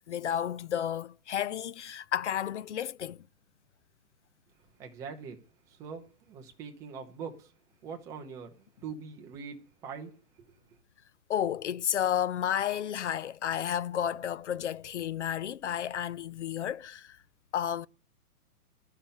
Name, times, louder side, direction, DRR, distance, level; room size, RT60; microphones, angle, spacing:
voice 1, 0.1-3.2 11.3-17.2 17.5-17.9, left 10 dB, 50° left, 0.5 m, -32 dB
voice 2, 4.8-7.5 7.8-10.6, right 6 dB, 5° right, 0.6 m, -43 dB
11.5 x 5.7 x 8.8 m
hypercardioid pair, 150°, 46 cm